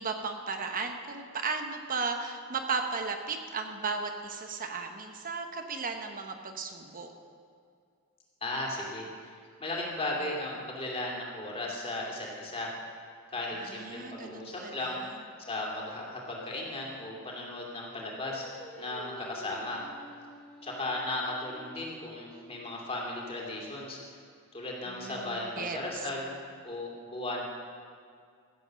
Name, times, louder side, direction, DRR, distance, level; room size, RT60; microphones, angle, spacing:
voice 1, 0.0-7.1 13.5-15.2 24.9-26.1, right 4 dB, 40° right, 5 dB, 1.0 m, -35 dB
voice 2, 8.4-9.3 9.6-12.7 13.3-15.0 15.5-18.5 18.8-19.8 20.6-24.0 24.5-26.3 26.6-27.4, left 2 dB, 25° left, -2 dB, 2.6 m, -36 dB
Singing, 18.2-23.5, equal, 5° left, 1.9 m, -50 dB
15.0 x 7.9 x 6.4 m, 2.2 s
head